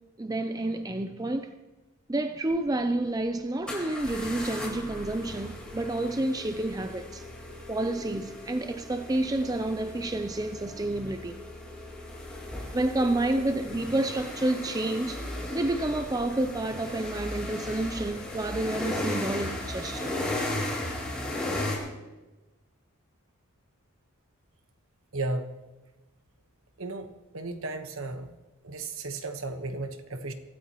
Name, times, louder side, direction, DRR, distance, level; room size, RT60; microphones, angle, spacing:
voice 1, 0.2-1.5 2.1-7.3 7.7-11.3 12.7-15.3 15.5-20.1, right 2 dB, 15° right, 0.5 m, -29 dB
sound 1, 2.5-2.6 3.7-21.8, left 1 dB, 5° left, 4.0 m, -36 dB
voice 2, 25.1-25.5 26.8-27.1 27.3-28.3 28.6-30.3, right 2 dB, 65° right, 1.3 m, -34 dB
23.5 x 13.5 x 3.0 m
head